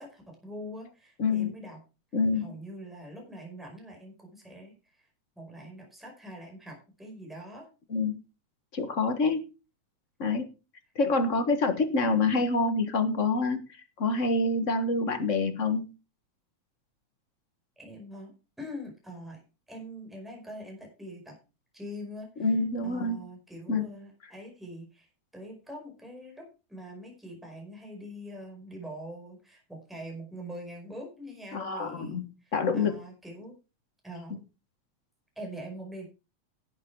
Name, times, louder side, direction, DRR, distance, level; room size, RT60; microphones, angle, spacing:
voice 1, 0.0-1.8 2.3-5.1 5.3-7.7 17.8-18.3 18.6-19.4 19.7-21.4 21.7-33.6 34.0-34.4 35.3-36.1, equal, ahead, 1 dB, 4.8 m, -44 dB
voice 2, 1.2-1.5 2.1-2.5 7.9-8.2 8.7-9.5 10.2-10.4 10.9-13.6 14.0-15.8 22.4-23.2 23.7-23.9 31.5-32.2 32.5-33.0, left 3 dB, 35° left, 8 dB, 1.2 m, -26 dB
12.0 x 8.5 x 4.7 m, 0.31 s
omnidirectional pair, 3.4 m